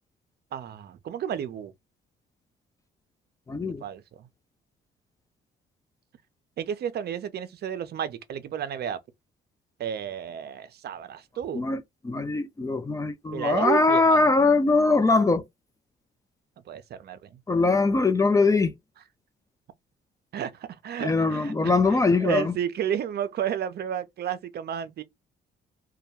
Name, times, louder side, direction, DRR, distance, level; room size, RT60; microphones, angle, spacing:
voice 1, 0.5-1.7 3.8-4.3 6.6-9.0 9.8-11.7 13.3-14.2 16.7-17.3 20.3-25.0, right 9 dB, 55° right, 0.5 m, -32 dB
voice 2, 3.5-3.8 11.5-15.4 17.5-18.7 21.0-22.5, left 3 dB, 15° left, 0.3 m, -22 dB
2.2 x 2.1 x 2.8 m
cardioid pair, 90°, 20 cm